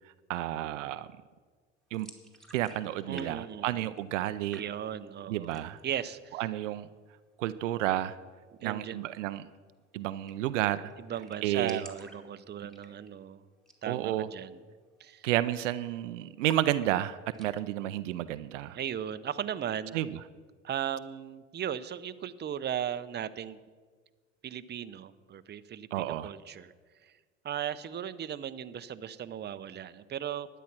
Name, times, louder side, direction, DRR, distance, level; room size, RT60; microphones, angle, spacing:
voice 1, 0.3-1.1 1.9-2.1 2.5-4.6 5.3-5.8 6.3-6.9 7.4-8.2 8.6-9.5 9.9-10.9 11.4-11.8 12.6-12.7 13.8-14.3 15.2-18.8 19.9-20.2 25.9-26.3, right 14 dB, 80° right, 14 dB, 0.5 m, -31 dB
sound 1, 1.9-3.3 3.5-4.3 4.5-5.1 5.4-5.9 6.3-6.4 6.7-7.4 9.0-9.2 9.5-9.6 9.8-9.9 10.3-10.6 10.9-11.0 11.2-13.2 13.6-13.9 14.2-14.3 14.8-15.1 15.4-16.0 16.5-17.5, equal, ahead, 2.1 m, -51 dB
voice 2, 3.1-3.9 4.5-6.4 8.6-9.0 11.0-13.4 13.8-14.6 15.0-15.2 18.7-20.0 20.6-23.6 24.4-25.9 26.2-26.7 27.0-27.1 27.4-30.5, right 9 dB, 30° right, 12 dB, 0.6 m, -37 dB
12.0 x 9.3 x 6.0 m, 1.5 s
hypercardioid pair, 65°, 36 cm